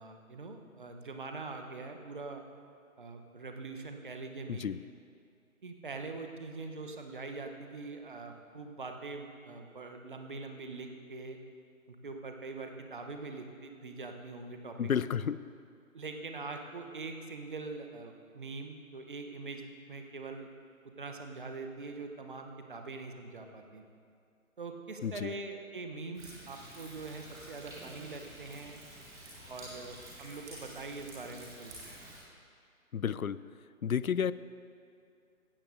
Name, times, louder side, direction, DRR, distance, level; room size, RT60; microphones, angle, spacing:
voice 1, 0.0-2.4 3.0-4.7 5.6-11.4 11.9-14.9 15.9-20.5 20.8-23.8 24.6-28.8 29.5-31.7, right 3 dB, 35° right, 4 dB, 0.9 m, -43 dB
voice 2, 14.8-15.4 25.0-25.3 32.9-33.4 33.8-34.3, left 8 dB, 75° left, 17 dB, 0.5 m, -31 dB
Thunder, 26.1-32.2, right 1 dB, 10° right, 1.6 m, -49 dB
16.0 x 13.0 x 2.6 m, 2.3 s
figure-of-eight pair, 145°, 42 cm